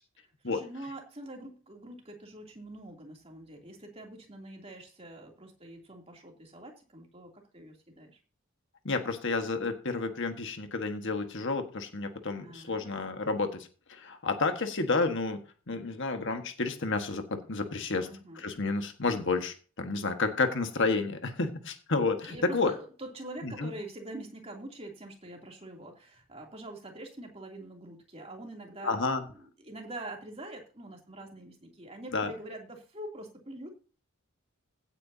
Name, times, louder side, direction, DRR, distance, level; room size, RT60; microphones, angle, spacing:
voice 1, 0.2-8.2 12.4-13.1 18.0-18.4 22.2-33.7, right 1 dB, 25° right, 1 dB, 2.9 m, -45 dB
voice 2, 8.8-15.4 15.7-18.1 18.3-22.7 23.4-23.7 28.8-29.2 32.1-32.3, left 3 dB, 55° left, 6 dB, 1.5 m, -30 dB
16.5 x 9.1 x 2.8 m, 0.37 s
head